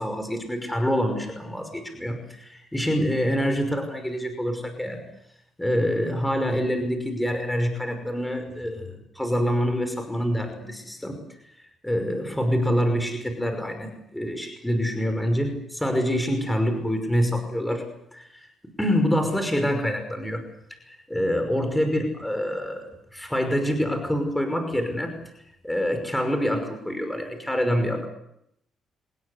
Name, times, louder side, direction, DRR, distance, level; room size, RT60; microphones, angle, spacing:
voice 1, 0.0-5.0 5.6-11.2 11.8-17.9 18.1-18.5 18.8-20.4 20.9-25.1 25.6-28.1, equal, 5° left, 6 dB, 5.6 m, -26 dB
27.0 x 20.5 x 8.2 m, 0.75 s
cardioid pair, 90°, 0 cm